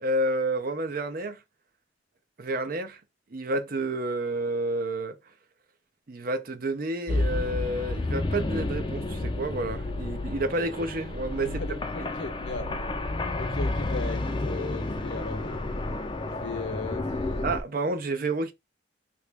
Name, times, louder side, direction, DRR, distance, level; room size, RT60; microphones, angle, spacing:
voice 1, 0.0-1.4 2.4-3.0 3.3-5.2 6.1-11.6 12.0-12.1 17.4-18.5, right 2 dB, 50° right, 0.6 m, -30 dB
sound 1, 7.1-17.6, left 2 dB, 25° left, 0.4 m, -31 dB
voice 2, 11.4-12.7 13.4-15.6 16.3-17.1, left 3 dB, 65° left, 0.7 m, -37 dB
2.9 x 2.5 x 3.3 m
head